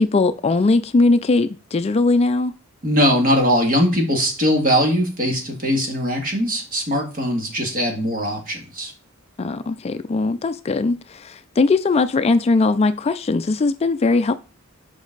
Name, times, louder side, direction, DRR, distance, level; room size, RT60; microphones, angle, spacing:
voice 1, 0.0-2.5 9.4-14.3, left 3 dB, 30° left, 0.4 m, -19 dB
voice 2, 2.8-8.9, equal, 45° right, 2.0 m, -20 dB
7.0 x 5.3 x 3.9 m
head